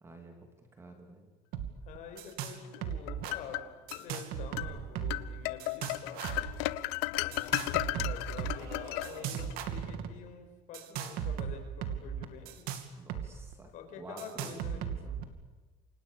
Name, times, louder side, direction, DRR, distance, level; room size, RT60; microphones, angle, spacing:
voice 1, 0.0-1.3 9.4-9.8 13.0-15.2, right 2 dB, 15° right, 4 dB, 3.0 m, -50 dB
sound 1, 1.5-1.7 1.9-2.6 2.8-3.3 3.9-5.3 5.6-6.5 7.3-8.6 9.0-10.1 10.7-13.3 13.5-13.6 14.2-15.2, right 8 dB, 55° right, 2.7 m, -36 dB
voice 2, 1.8-3.6 3.9-6.3 7.2-12.6 13.7-15.2, left 6 dB, 45° left, 5 dB, 5.4 m, -47 dB
sound 2, 2.7-4.0 4.6-4.7 5.1-9.5, left 19 dB, 85° left, 1.0 m, -35 dB
sound 3, 8.5-9.9, right 7 dB, 90° right, 4.0 m, -50 dB
29.5 x 26.0 x 7.1 m, 1.3 s
cardioid pair, 180°, 18 cm